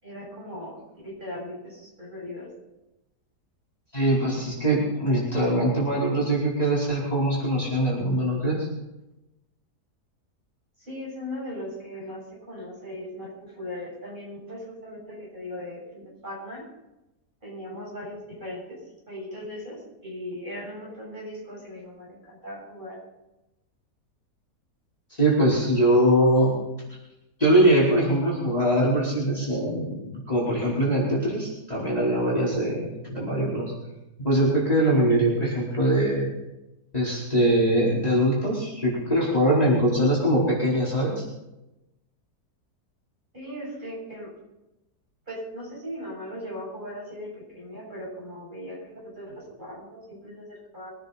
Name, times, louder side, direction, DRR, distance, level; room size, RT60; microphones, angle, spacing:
voice 1, 0.0-2.5 10.8-16.7 17.4-18.8 19.1-23.0 43.3-44.3 45.3-50.9, left 1 dB, 30° right, -5 dB, 7.5 m, -38 dB
voice 2, 3.9-8.7 25.2-26.5 27.4-33.7 34.2-36.3 36.9-41.2, right 1 dB, 25° left, -7 dB, 4.7 m, -22 dB
23.0 x 10.0 x 4.2 m, 0.95 s
omnidirectional pair, 1.7 m